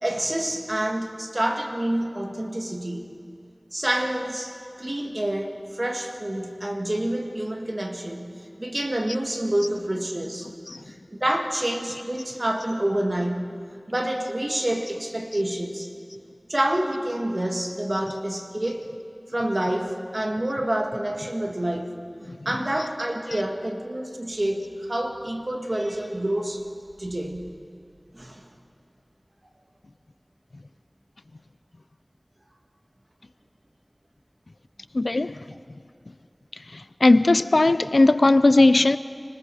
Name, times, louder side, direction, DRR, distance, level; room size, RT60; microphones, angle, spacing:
voice 1, 0.0-3.1 3.7-10.5 10.8-13.5 13.9-15.9 16.5-18.9 19.3-21.9 22.5-26.6 27.0-27.5 28.1-28.4, right 1 dB, 45° right, 2.1 m, -28 dB
voice 2, 34.9-35.4 36.7-39.0, left 2 dB, 85° left, 0.5 m, -18 dB
29.5 x 20.0 x 4.9 m
wide cardioid pair, 45°, 0 cm